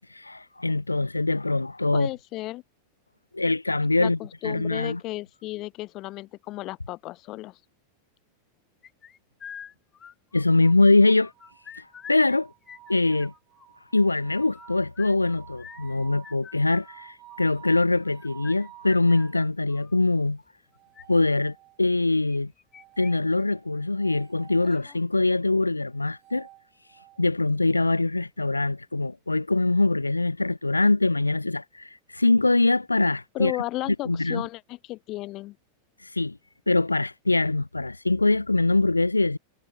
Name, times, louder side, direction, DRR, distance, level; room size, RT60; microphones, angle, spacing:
voice 1, 0.1-2.1 3.3-4.2 4.4-5.0 10.3-11.3 11.8-12.5 12.9-13.3 13.9-20.4 21.1-22.5 23.0-26.5 27.2-33.5 34.1-34.4 36.0-36.4 36.7-39.4, left 2 dB, 80° left, 0.3 m, -23 dB
voice 2, 1.9-2.6 4.0-7.6 33.3-35.6, left 18 dB, 40° left, 0.8 m, -34 dB
sound 1, 8.8-10.7 11.1-12.4 12.6-13.7 14.3-20.0 20.7-21.0 22.3-23.1 23.4-23.5 23.9-24.0 24.6-25.0, left 8 dB, 25° left, 3.9 m, -47 dB
Crystal Symphony. Sinfonia Delicada, 11.3-19.4 20.7-22.0 22.7-24.7 25.9-27.3, right 16 dB, 35° right, 3.9 m, -51 dB
figure-of-eight pair, 90°, 0 cm